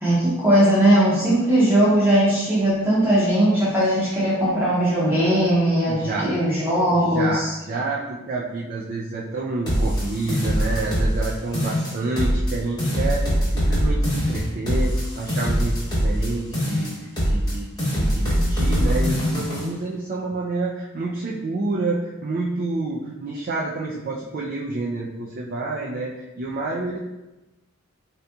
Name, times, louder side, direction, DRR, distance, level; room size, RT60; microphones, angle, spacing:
voice 1, 0.0-7.5, right 1 dB, 10° right, -9 dB, 0.7 m, -19 dB
voice 2, 5.9-6.3 6.9-16.9 17.2-27.0, right 2 dB, 45° right, -4 dB, 0.3 m, -28 dB
sound 1, 9.7-11.3 11.5-12.5 12.8-16.3 16.5-17.5 17.8-19.7, equal, 20° left, 1.0 m, -22 dB
3.8 x 2.8 x 2.2 m, 1.0 s
head